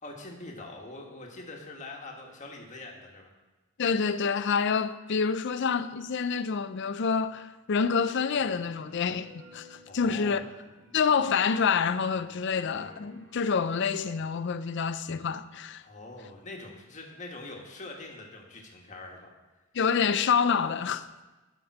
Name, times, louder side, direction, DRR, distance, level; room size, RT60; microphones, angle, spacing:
voice 1, 0.0-3.3 9.9-11.0 15.8-19.3, left 2 dB, 40° left, 1.5 m, -44 dB
voice 2, 3.8-10.4 10.9-15.8 19.7-21.1, left 6 dB, 60° left, 0.5 m, -27 dB
sound 1, 8.3-11.7 12.1-12.2 12.5-15.4, left 1 dB, 85° right, 3.1 m, -55 dB
12.0 x 5.3 x 4.8 m
head